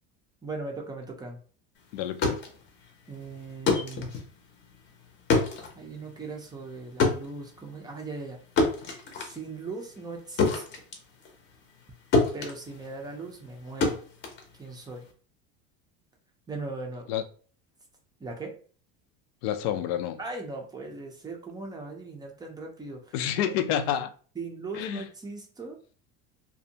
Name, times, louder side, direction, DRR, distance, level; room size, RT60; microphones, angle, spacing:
voice 1, 0.4-1.4 3.1-4.1 5.8-8.4 9.2-10.8 12.3-14.0 14.6-15.1 16.5-17.1 18.2-18.6 20.2-23.5 24.4-25.8, right 3 dB, 15° right, 0.4 m, -39 dB
voice 2, 1.9-2.4 17.1-17.2 19.4-20.2 23.1-24.1 24.7-25.0, left 10 dB, 85° left, 0.5 m, -28 dB
sound 1, 2.0-11.9 12.1-15.1, left 3 dB, 35° left, 0.7 m, -29 dB
2.6 x 2.1 x 2.7 m
cardioid pair, 140°, 30 cm